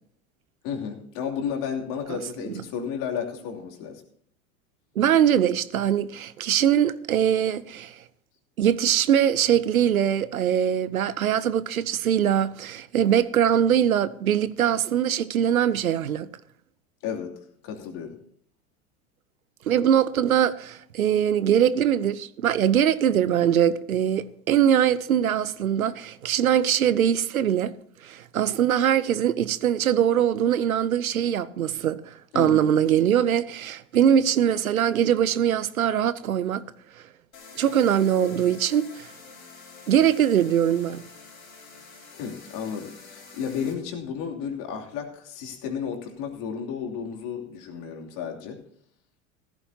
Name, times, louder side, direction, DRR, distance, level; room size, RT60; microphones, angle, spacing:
voice 1, 0.6-4.0 17.0-17.3 17.6-18.1 32.3-32.7 42.2-48.6, left 7 dB, 50° left, 2.9 m, -32 dB
voice 2, 5.0-8.0 8.6-16.3 19.7-27.7 28.0-36.6 37.6-39.1 39.9-41.0, right 9 dB, 85° right, 0.7 m, -22 dB
sound 1, 37.3-43.7, left 4 dB, 80° left, 4.4 m, -47 dB
15.5 x 14.0 x 2.8 m
hypercardioid pair, 85°, 41 cm